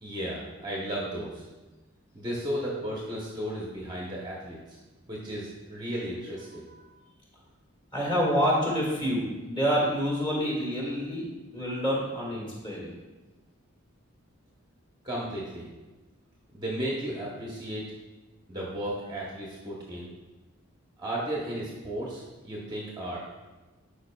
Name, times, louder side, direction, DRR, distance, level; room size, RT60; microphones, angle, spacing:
voice 1, 0.0-1.5 2.1-4.8 5.1-6.7 15.0-15.7 16.5-17.8 18.5-20.1 21.0-23.2, right 1 dB, 20° right, -4 dB, 0.8 m, -34 dB
voice 2, 7.9-11.3 11.5-12.9, equal, 20° left, -5 dB, 1.8 m, -27 dB
11.0 x 5.0 x 2.2 m, 1.2 s
head